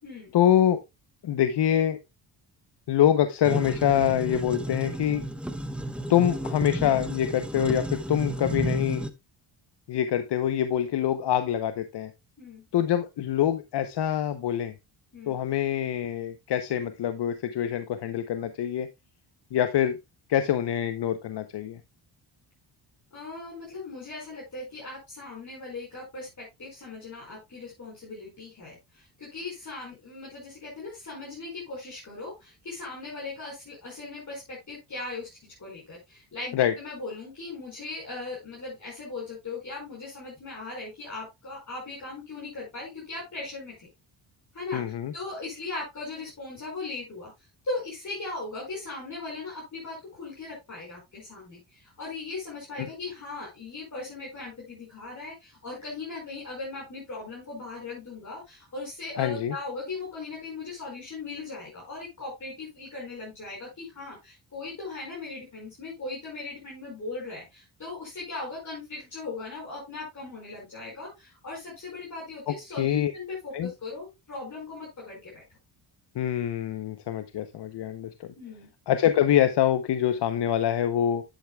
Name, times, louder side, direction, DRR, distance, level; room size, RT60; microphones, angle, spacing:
voice 1, 0.3-0.8 1.2-2.0 2.9-5.2 6.1-9.0 9.9-12.1 12.7-14.7 15.3-18.9 19.5-20.0 20.3-21.8 36.5-36.7 44.7-45.1 59.2-59.5 72.5-73.1 73.5-73.7 76.1-78.3 78.9-81.2, left 10 dB, 60° left, 10 dB, 0.8 m, -25 dB
sound 1, 3.4-9.1, right 1 dB, ahead, 0.8 m, -32 dB
voice 2, 23.1-43.9 44.5-44.8 45.1-47.3 47.6-75.4 78.4-78.7, left 3 dB, 40° left, -5 dB, 5.1 m, -38 dB
10.0 x 8.2 x 2.3 m, 0.22 s
cardioid pair, 100°, 46 cm